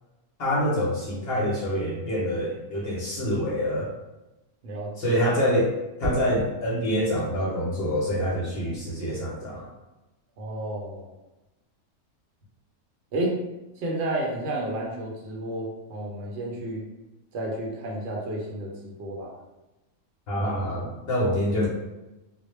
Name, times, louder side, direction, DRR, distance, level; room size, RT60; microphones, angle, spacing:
voice 1, 0.4-3.9 5.0-5.7 6.0-9.6 20.3-21.7, equal, 60° left, -4 dB, 0.8 m, -26 dB
voice 2, 4.6-5.2 10.4-11.1 13.1-13.4 13.8-16.8 17.3-19.3, right 1 dB, 60° right, -2 dB, 0.8 m, -31 dB
sound 1, 6.0-6.5 8.5-8.8, left 1 dB, 25° right, 0.7 m, -34 dB
2.2 x 2.1 x 3.1 m, 1.0 s
omnidirectional pair, 1.4 m